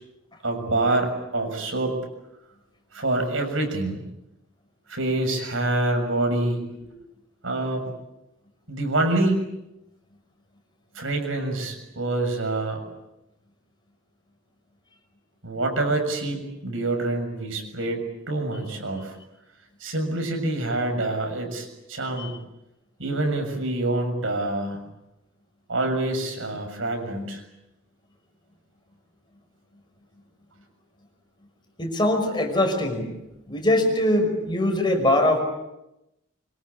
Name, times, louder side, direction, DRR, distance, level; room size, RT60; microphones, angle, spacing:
voice 1, 0.4-2.0 2.9-4.0 4.9-6.6 7.4-7.9 8.7-9.4 11.0-12.9 15.4-19.1 19.8-22.3 23.0-24.8 25.7-27.4, right 2 dB, 80° right, 4 dB, 7.0 m, -26 dB
voice 2, 31.8-33.1 33.5-35.4, left 1 dB, 25° left, 4 dB, 5.8 m, -22 dB
25.5 x 25.0 x 8.6 m, 0.90 s
head